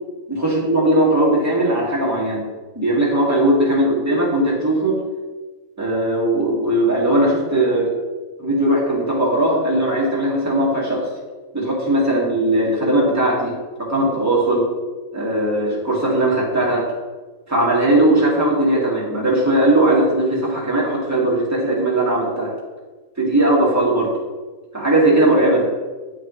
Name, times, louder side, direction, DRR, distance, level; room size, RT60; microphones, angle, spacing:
voice 1, 0.3-2.5 2.8-5.0 5.8-7.9 8.4-11.1 11.5-13.5 13.8-14.7 15.1-16.9 17.5-22.5 23.2-24.1 24.7-25.6, right 1 dB, 10° right, -5 dB, 1.9 m, -18 dB
9.9 x 5.8 x 3.1 m, 1.3 s
omnidirectional pair, 1.5 m